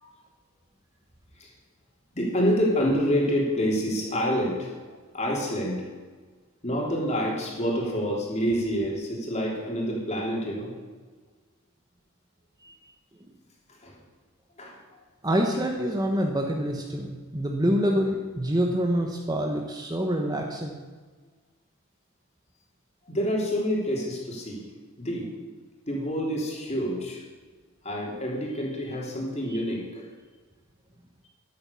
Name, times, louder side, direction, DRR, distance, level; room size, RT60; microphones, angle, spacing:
voice 1, 2.1-4.8 5.1-5.9 6.6-10.7 13.7-13.9 14.6-14.8 23.1-24.6 25.0-25.3 25.9-27.2 27.8-30.0, equal, 30° left, -2 dB, 3.5 m, -27 dB
voice 2, 15.2-20.8 29.5-29.6, equal, 20° right, 2 dB, 1.1 m, -26 dB
12.0 x 11.5 x 7.0 m, 1.4 s
head